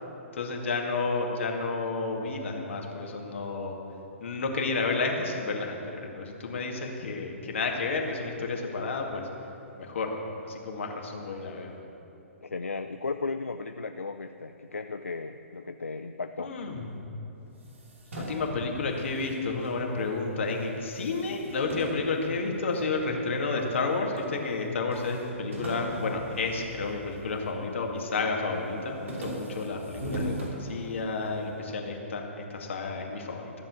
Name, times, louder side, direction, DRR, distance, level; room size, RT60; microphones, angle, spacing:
voice 1, 0.3-3.8 4.2-9.2 9.8-10.1 10.4-11.7 16.4-16.9 18.2-33.4, left 3 dB, 65° left, 1 dB, 2.1 m, -31 dB
voice 2, 12.4-16.5, left 4 dB, 85° left, 8 dB, 0.5 m, -35 dB
sound 1, 17.5-20.2 20.5-23.0 23.6-24.3 24.5-24.6 24.9-27.5 27.9-28.3 28.7-31.3, right 1 dB, 75° right, 2.9 m, -39 dB
14.0 x 7.5 x 7.6 m, 3.0 s
figure-of-eight pair, 120°, 7 cm